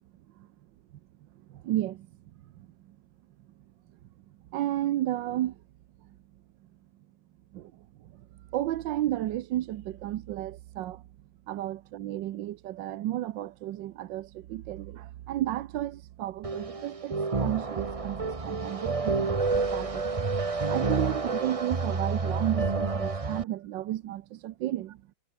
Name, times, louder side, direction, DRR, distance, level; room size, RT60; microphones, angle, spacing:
voice 1, 1.5-2.1 2.6-3.0 4.5-5.6 6.0-6.2 7.5-8.3 8.5-11.0 11.5-20.3 20.7-25.1, right 13 dB, 75° right, 1.4 m, -33 dB
sound 1, 16.4-23.4, right 4 dB, 25° right, 0.9 m, -29 dB
omnidirectional pair, 2.1 m